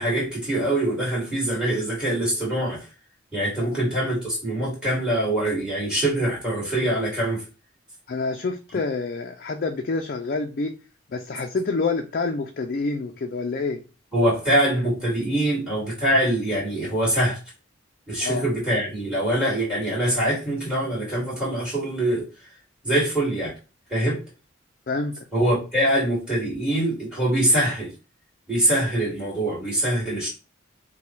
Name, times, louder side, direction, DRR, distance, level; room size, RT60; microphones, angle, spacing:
voice 1, 0.0-2.8 3.3-7.4 14.1-17.4 18.1-22.3 22.8-23.5 23.9-24.2 25.3-27.9 28.5-30.3, right 1 dB, 5° right, 2.3 m, -24 dB
voice 2, 8.1-10.8 11.1-13.8 18.2-18.5 24.9-25.2, left 3 dB, 50° left, 0.4 m, -27 dB
5.7 x 2.2 x 3.1 m
head